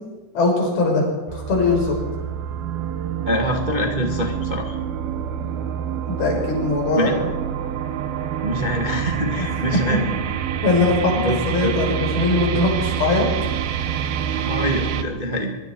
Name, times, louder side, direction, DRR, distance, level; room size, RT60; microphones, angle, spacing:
voice 1, 0.3-1.0 1.3-2.0 6.0-7.1 9.4-9.5 9.7-9.8 10.6-11.2 11.5-13.3, left 3 dB, 90° left, 0 dB, 7.6 m, -20 dB
sound 1, 1.3-15.0, right 8 dB, 85° right, 3.0 m, -27 dB
voice 2, 3.2-4.8 7.0-7.2 8.4-10.1 11.2-11.7 14.4-15.6, equal, 25° right, 2 dB, 1.0 m, -25 dB
23.5 x 23.0 x 4.7 m, 1.2 s
omnidirectional pair, 4.2 m